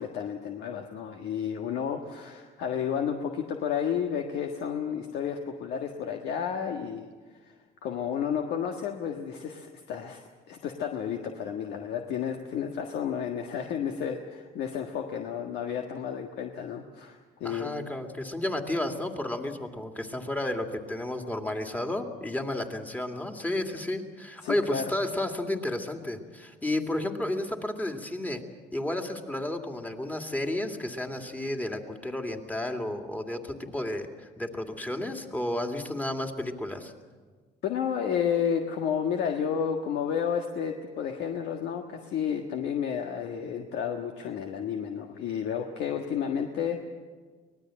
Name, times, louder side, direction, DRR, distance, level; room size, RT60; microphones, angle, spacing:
voice 1, 0.0-7.1 7.8-17.7 24.4-24.8 37.6-46.8, left 8 dB, 80° left, 3 dB, 1.6 m, -31 dB
voice 2, 17.4-28.4 28.7-36.9, left 1 dB, 10° left, 4 dB, 2.3 m, -32 dB
24.5 x 19.0 x 7.7 m, 1.4 s
cardioid pair, 110°, 17 cm